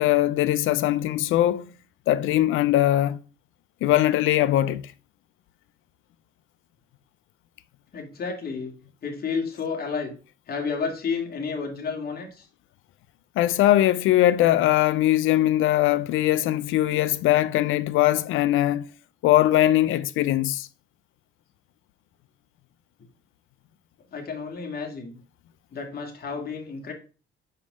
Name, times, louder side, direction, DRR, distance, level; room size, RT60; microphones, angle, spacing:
voice 1, 0.0-1.7 2.1-3.2 3.8-4.8 13.4-18.8 19.2-20.7, left 14 dB, 90° left, 0.6 m, -21 dB
voice 2, 7.9-8.7 9.0-10.1 10.5-12.5 24.1-25.2 25.7-26.9, left 5 dB, 50° left, 2.5 m, -31 dB
5.6 x 5.4 x 6.2 m
cardioid pair, 90°, 20 cm